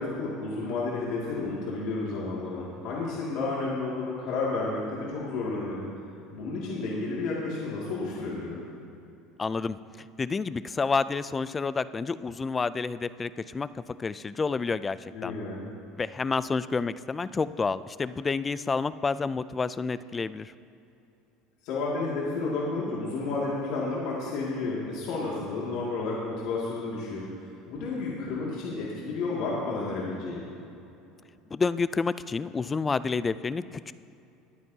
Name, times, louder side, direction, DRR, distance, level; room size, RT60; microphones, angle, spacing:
voice 1, 0.0-5.8 6.3-8.6 15.1-15.6 21.6-30.5, left 3 dB, 65° left, -6 dB, 2.2 m, -31 dB
voice 2, 9.4-15.4 16.0-20.5 31.5-33.9, left 4 dB, 20° left, 16 dB, 0.3 m, -29 dB
21.0 x 8.9 x 2.8 m, 2.7 s
supercardioid pair, 120°, 0 cm